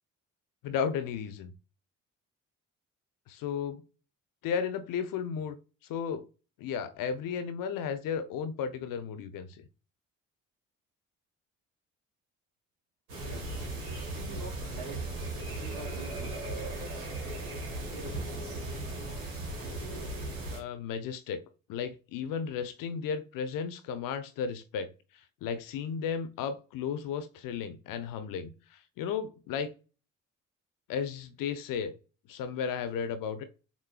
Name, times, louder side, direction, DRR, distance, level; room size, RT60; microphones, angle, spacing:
voice 1, 0.6-1.5 3.3-3.8 4.4-5.6 5.9-6.3 6.6-9.5 20.5-21.4 21.7-24.9 25.4-28.5 29.0-29.7 30.9-31.9 32.3-33.4, left 7 dB, 55° left, 0.8 m, -34 dB
sound 1, 13.1-20.6, right 2 dB, 75° right, 1.7 m, -37 dB
voice 2, 14.0-15.1 15.5-16.4 16.8-17.1 17.9-18.4, right 3 dB, 55° right, 1.7 m, -46 dB
6.8 x 2.6 x 2.3 m
figure-of-eight pair, 45°, 39 cm